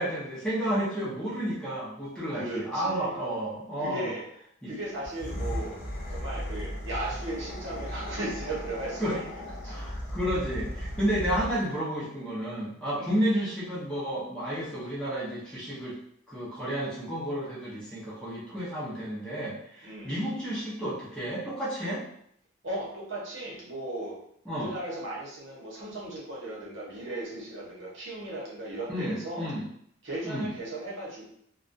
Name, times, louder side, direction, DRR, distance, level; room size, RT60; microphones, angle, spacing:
voice 1, 0.0-4.1 4.6-4.7 9.0-9.2 9.7-16.0 16.3-22.0 24.5-24.7 28.9-29.7 30.2-30.5, right 1 dB, 5° left, -8 dB, 0.6 m, -31 dB
voice 2, 2.3-3.2 3.8-4.2 4.7-5.8 6.1-9.3 9.6-9.7 13.0-13.1 19.8-20.1 22.6-24.2 24.5-29.5 30.0-31.3, right 1 dB, 70° right, -5 dB, 0.9 m, -36 dB
sound 1, 4.9-11.7, equal, 45° left, 0.5 m, -36 dB
2.3 x 2.2 x 2.5 m, 0.69 s
head